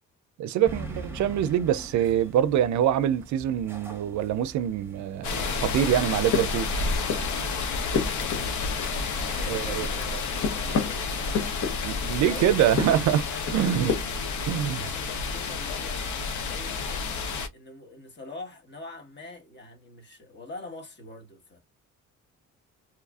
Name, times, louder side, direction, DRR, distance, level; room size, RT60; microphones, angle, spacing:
voice 1, 0.4-6.7 9.5-9.9 11.8-13.2 13.5-13.9 14.5-14.8, right 10 dB, 70° right, 0.5 m, -24 dB
sound 1, 0.6-11.0, right 1 dB, 10° right, 0.9 m, -44 dB
sound 2, 5.2-17.5, left 4 dB, 75° left, 0.7 m, -30 dB
sound 3, 6.3-7.4 7.7-9.3 9.5-12.1 12.6-14.3, left 6 dB, 60° left, 1.1 m, -32 dB
voice 2, 8.2-8.5 9.1-11.6 12.1-12.6 13.0-14.1 14.7-17.1 17.5-21.6, left 2 dB, 35° left, 1.3 m, -44 dB
3.1 x 2.4 x 2.3 m
cardioid pair, 90°, 30 cm